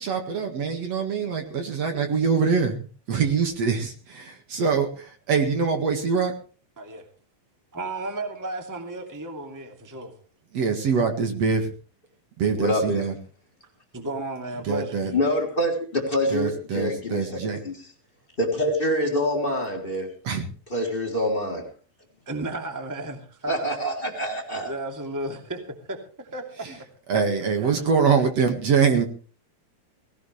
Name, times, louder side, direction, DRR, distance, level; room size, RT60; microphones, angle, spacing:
voice 1, 0.0-6.3 10.5-11.7 12.4-13.1 14.6-15.1 16.3-17.6 20.2-20.5 26.6-26.7 27.1-29.1, right 5 dB, 50° right, 2.8 m, -24 dB
voice 2, 7.7-10.1 13.9-15.1 22.3-23.7 24.0-24.3 24.6-25.6 25.9-26.9 27.4-27.8, right 2 dB, 5° right, 2.0 m, -34 dB
voice 3, 12.6-13.1 15.1-17.8 18.4-20.1 20.7-21.7 23.5-24.7, equal, 15° left, 3.4 m, -26 dB
18.5 x 18.0 x 3.4 m
omnidirectional pair, 4.0 m